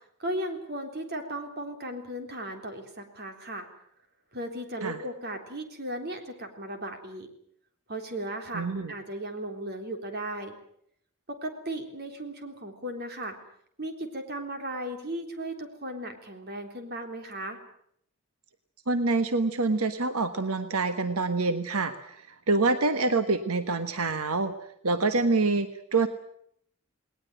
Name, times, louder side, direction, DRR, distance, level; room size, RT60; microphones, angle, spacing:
voice 1, 0.2-3.7 4.3-7.3 7.9-10.6 11.3-13.4 13.8-17.6, right 1 dB, 45° right, 5 dB, 3.7 m, -36 dB
voice 2, 8.5-8.9 18.9-24.5 24.8-26.1, right 3 dB, 90° right, 9 dB, 1.3 m, -26 dB
19.5 x 19.5 x 9.2 m, 0.68 s
head